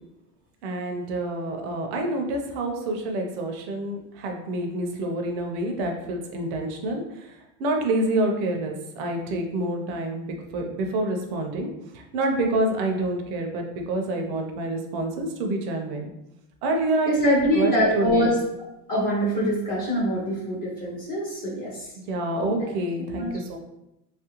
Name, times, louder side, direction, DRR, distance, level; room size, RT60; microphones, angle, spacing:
voice 1, 0.6-11.7 11.9-16.1 16.6-18.3 22.1-23.6, right 1 dB, 40° right, 3 dB, 0.4 m, -27 dB
voice 2, 17.1-18.4 18.9-21.9 22.6-22.7 23.2-23.4, equal, 20° left, -4 dB, 0.4 m, -24 dB
3.2 x 2.4 x 2.9 m, 0.88 s
supercardioid pair, 155°, 49 cm